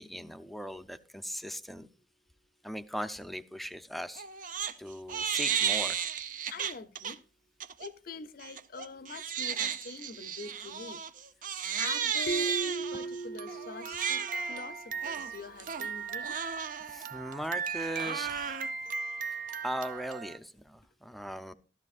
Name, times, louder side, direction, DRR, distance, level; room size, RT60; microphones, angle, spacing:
voice 1, 0.0-1.9 2.6-4.3 4.8-6.0 16.9-18.6 19.6-21.5, equal, ahead, 0.5 m, -39 dB
Crying sobbing, 4.2-4.7 5.1-7.1 7.6-7.9 8.4-20.4, right 7 dB, 50° right, 0.6 m, -34 dB
voice 2, 6.5-7.2 7.8-11.0 11.7-14.2 14.5-16.3, left 4 dB, 55° left, 0.6 m, -44 dB
sound 1, 12.3-14.8, right 3 dB, 85° left, 0.8 m, -37 dB
13.5 x 13.0 x 2.4 m
head